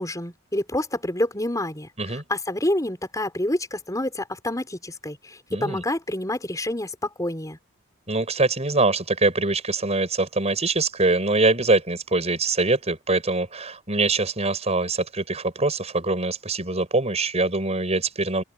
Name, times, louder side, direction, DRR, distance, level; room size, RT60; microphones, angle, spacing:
voice 1, 0.0-7.6, left 1 dB, 15° left, 5.6 m, -28 dB
voice 2, 5.5-5.8 8.1-18.4, right 3 dB, 30° right, 5.4 m, -23 dB
open air
head